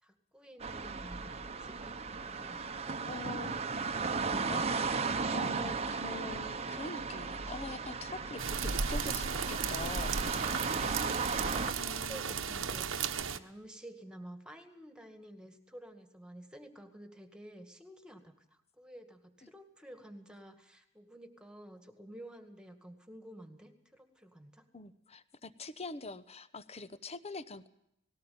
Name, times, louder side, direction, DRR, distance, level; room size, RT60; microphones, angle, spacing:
voice 1, 0.0-2.6 11.4-12.9 13.2-24.7, right 1 dB, 5° right, 7 dB, 2.1 m, -51 dB
sound 1, 0.6-11.7, right 4 dB, 30° right, 1.0 m, -36 dB
voice 2, 3.1-3.6 4.3-4.8 5.3-10.4 11.7-12.7 19.4-19.5 24.7-27.7, left 3 dB, 30° left, 14 dB, 1.0 m, -44 dB
sound 2, 8.0-12.5, right 2 dB, 50° right, 0.9 m, -54 dB
sound 3, 8.4-13.4, right 6 dB, 70° right, 1.2 m, -35 dB
19.5 x 17.5 x 8.7 m, 0.79 s
head